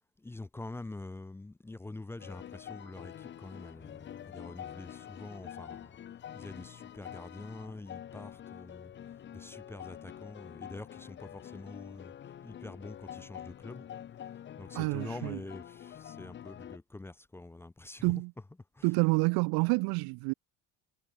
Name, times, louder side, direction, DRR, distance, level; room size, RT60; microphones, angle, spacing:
voice 1, 0.2-6.0 6.3-8.9 9.3-13.9 14.6-19.0 19.6-20.1, left 2 dB, 5° left, 0.8 m, -46 dB
sound 1, 2.2-16.8, left 10 dB, 30° left, 2.0 m, -46 dB
voice 2, 14.7-15.4 18.0-18.3 18.8-20.3, right 30 dB, 75° right, 1.0 m, -28 dB
cardioid pair, 175°, 38 cm